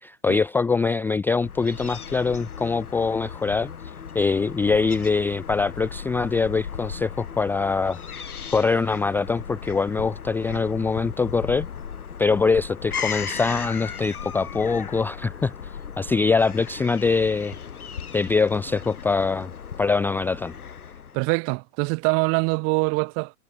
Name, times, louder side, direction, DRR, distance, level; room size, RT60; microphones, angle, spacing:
voice 1, 0.0-3.7 4.1-11.7 12.2-17.5 18.1-19.5 19.8-20.5, left 4 dB, 5° left, 0.6 m, -23 dB
Fowl / Gull seagull, 1.4-21.3, left 7 dB, 70° left, 2.9 m, -36 dB
voice 2, 21.1-23.3, right 32 dB, 30° right, 1.3 m, -24 dB
figure-of-eight pair, 110°, 45 cm